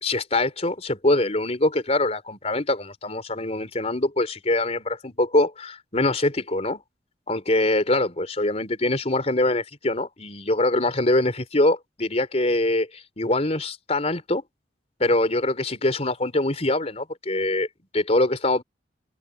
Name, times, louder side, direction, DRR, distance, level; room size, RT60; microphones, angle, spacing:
voice 1, 0.0-6.8 7.3-14.4 15.0-17.7 17.9-18.6, left 2 dB, 40° left, 4.1 m, -23 dB
head